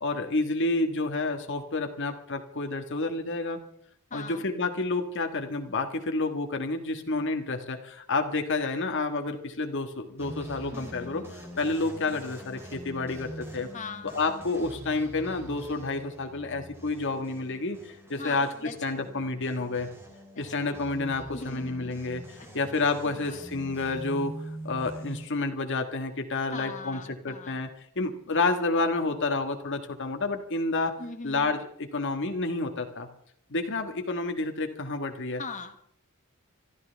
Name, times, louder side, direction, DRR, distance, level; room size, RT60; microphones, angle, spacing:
voice 1, 0.0-3.6 4.1-11.2 11.6-13.7 14.1-19.9 20.4-22.2 22.5-24.3 24.6-27.7 27.9-31.0 31.2-33.1 33.5-35.4, left 3 dB, 55° left, 5 dB, 1.5 m, -29 dB
voice 2, 4.1-4.5 10.7-11.3 13.7-14.2 18.2-19.1 20.3-20.8 21.3-22.0 22.4-22.5 23.0-23.8 26.5-27.6 31.0-31.5 35.4-35.8, left 4 dB, 35° left, 7 dB, 1.3 m, -41 dB
sound 1, 10.2-25.3, right 1 dB, 10° right, 3.0 m, -44 dB
25.5 x 13.0 x 3.4 m, 0.67 s
head